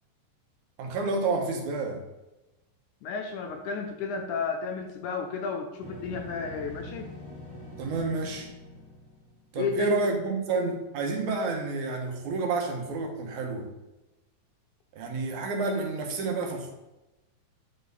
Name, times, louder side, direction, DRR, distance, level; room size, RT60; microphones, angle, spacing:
voice 1, 0.8-2.0 7.8-8.5 9.5-13.7 15.0-16.7, right 3 dB, 70° right, 2 dB, 2.3 m, -29 dB
voice 2, 3.0-7.1 9.6-10.0, left 5 dB, 75° left, 4 dB, 2.0 m, -32 dB
sound 1, 5.8-9.7, left 2 dB, 10° right, 1.7 m, -44 dB
10.0 x 4.5 x 4.0 m, 1.0 s
omnidirectional pair, 3.9 m